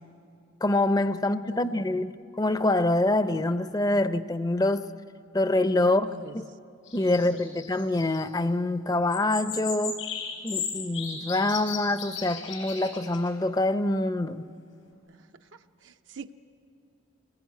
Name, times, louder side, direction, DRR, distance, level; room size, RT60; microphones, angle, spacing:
voice 1, 0.6-4.9 5.3-6.1 6.3-6.4 6.9-10.0 10.4-14.5, left 2 dB, 20° left, 12 dB, 0.5 m, -25 dB
voice 2, 1.2-2.0 5.8-6.4 7.2-7.7 15.1-16.3, right 4 dB, 70° right, 6 dB, 0.6 m, -46 dB
sound 1, 6.9-8.2 9.1-13.3, left 6 dB, 85° left, 4.7 m, -36 dB
25.5 x 20.0 x 9.3 m, 2.4 s
head